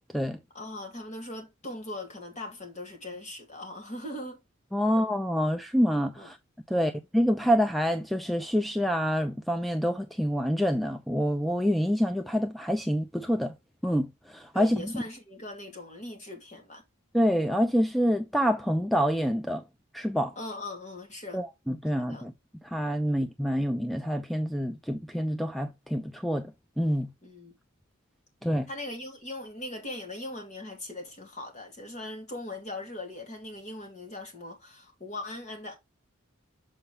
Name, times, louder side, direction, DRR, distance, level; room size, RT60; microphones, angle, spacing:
voice 1, 0.5-4.4 4.8-5.0 6.2-6.3 6.7-7.0 14.5-16.8 20.4-21.4 22.0-22.2 23.0-23.2 27.2-27.5 28.7-35.8, left 1 dB, 35° left, 2.4 m, -40 dB
voice 2, 4.7-6.4 6.7-13.5 13.8-14.9 17.1-19.6 19.9-20.3 21.3-22.3 22.6-26.4 26.8-27.1 28.4-28.7, equal, ahead, 0.5 m, -27 dB
7.1 x 4.8 x 3.2 m
head